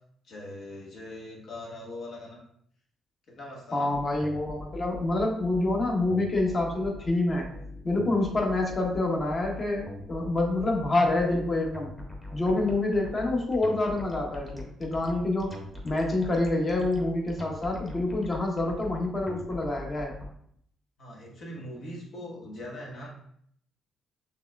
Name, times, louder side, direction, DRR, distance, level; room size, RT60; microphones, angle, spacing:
voice 1, 0.2-2.4 3.3-3.9 21.0-23.1, left 1 dB, 65° left, -2 dB, 1.3 m, -41 dB
voice 2, 3.7-7.5 7.8-11.9 12.3-20.1, left 2 dB, 35° left, 0 dB, 1.1 m, -27 dB
sound 1, 3.9-20.3, left 2 dB, 15° left, 1.1 m, -41 dB
5.6 x 3.2 x 2.3 m, 0.66 s
cardioid pair, 90°, 0 cm